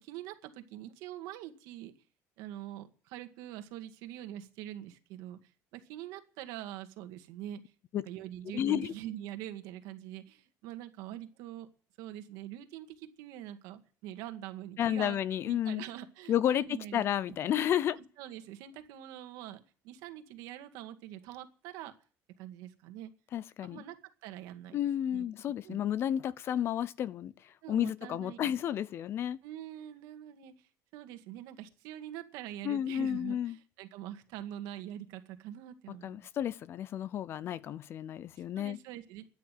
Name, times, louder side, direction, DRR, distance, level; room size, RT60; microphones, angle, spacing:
voice 1, 0.0-1.9 2.4-5.4 5.7-7.6 8.1-11.7 12.0-17.4 18.0-21.9 22.4-23.1 23.6-24.0 24.2-24.8 25.1-25.3 25.6-25.8 27.6-28.6 29.4-30.5 30.9-36.3 38.6-39.3, right 12 dB, 80° right, 2.0 m, -44 dB
voice 2, 8.5-8.9 14.8-15.8 16.3-18.0 23.3-23.8 24.7-27.3 27.7-29.4 32.6-33.6 35.9-38.8, left 10 dB, 40° left, 0.7 m, -31 dB
13.5 x 9.6 x 9.2 m
cardioid pair, 155°, 6 cm